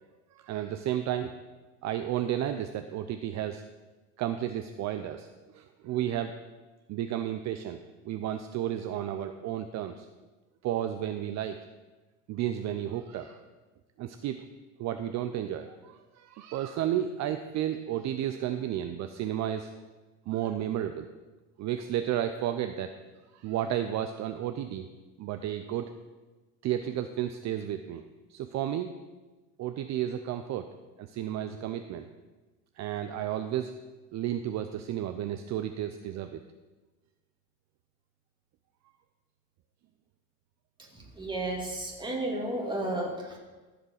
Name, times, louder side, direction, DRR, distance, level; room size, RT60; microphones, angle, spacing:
voice 1, 0.3-1.4 1.8-3.6 4.2-5.3 5.5-6.3 6.9-7.8 8.1-10.1 10.6-11.6 12.3-13.4 14.0-14.4 14.8-19.7 20.3-21.1 21.6-22.9 23.3-24.9 25.2-25.9 26.6-28.0 28.3-28.9 29.6-30.7 31.0-32.1 32.8-33.7 34.1-36.4, right 11 dB, 45° right, 8 dB, 0.6 m, -32 dB
voice 2, 41.1-43.4, right 1 dB, 10° right, -1 dB, 2.3 m, -32 dB
14.0 x 5.1 x 6.5 m, 1.2 s
supercardioid pair, 115°, 38 cm